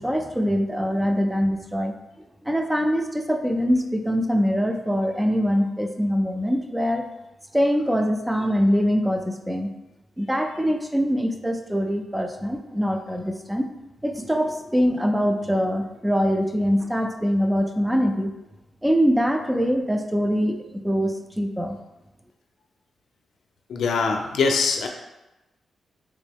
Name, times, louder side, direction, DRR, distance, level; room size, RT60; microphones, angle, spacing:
voice 1, 0.0-1.9 2.4-7.0 7.5-9.7 10.2-13.7 14.0-18.3 18.8-21.8, equal, 5° right, 5 dB, 0.3 m, -23 dB
voice 2, 23.7-24.9, left 4 dB, 90° left, 3 dB, 0.4 m, -22 dB
3.5 x 2.9 x 3.4 m, 0.99 s
wide cardioid pair, 130°, 0 cm